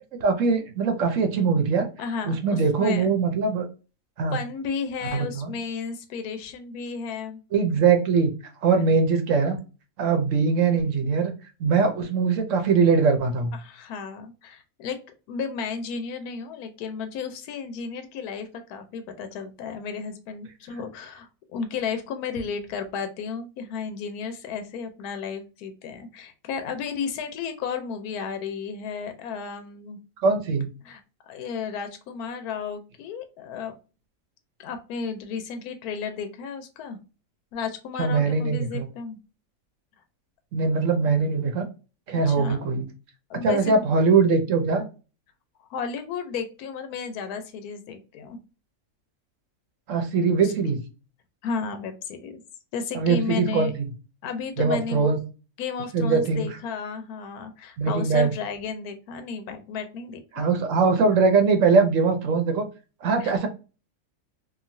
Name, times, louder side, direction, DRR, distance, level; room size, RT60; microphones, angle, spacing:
voice 1, 0.2-1.9 2.3-3.6 4.2-4.4 5.1-5.5 7.5-8.3 8.6-9.6 10.0-11.3 11.6-13.5 30.2-30.7 38.0-38.9 40.5-41.7 42.1-42.9 43.4-44.8 49.9-50.8 52.9-53.9 54.6-55.2 55.9-56.5 57.8-58.3 60.3-62.6 63.0-63.5, right 4 dB, 65° right, 6 dB, 0.9 m, -21 dB
voice 2, 2.0-3.1 4.3-7.4 13.6-15.0 15.3-30.0 30.8-31.0 31.3-33.8 34.6-37.0 37.5-39.2 42.3-42.6 43.3-43.8 45.7-48.4 50.4-50.5 51.4-52.4 52.7-53.7 54.2-55.1 55.6-60.8 63.2-63.5, left 5 dB, 85° left, 8 dB, 1.1 m, -33 dB
3.0 x 2.4 x 2.5 m, 0.33 s
omnidirectional pair, 1.6 m